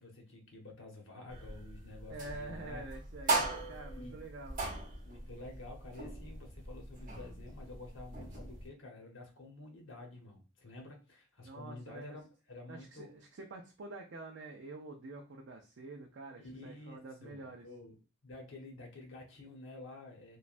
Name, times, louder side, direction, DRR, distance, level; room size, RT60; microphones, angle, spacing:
voice 1, 0.0-2.9 3.9-4.2 5.0-13.1 16.4-18.0 18.2-20.4, left 2 dB, 70° left, 1 dB, 1.0 m, -50 dB
sound 1, 1.3-8.7, right 2 dB, 40° right, 0.8 m, -39 dB
voice 2, 2.1-4.6 11.4-12.2 12.7-17.7, right 2 dB, 60° right, 1 dB, 0.4 m, -47 dB
3.1 x 2.3 x 2.5 m, 0.31 s
head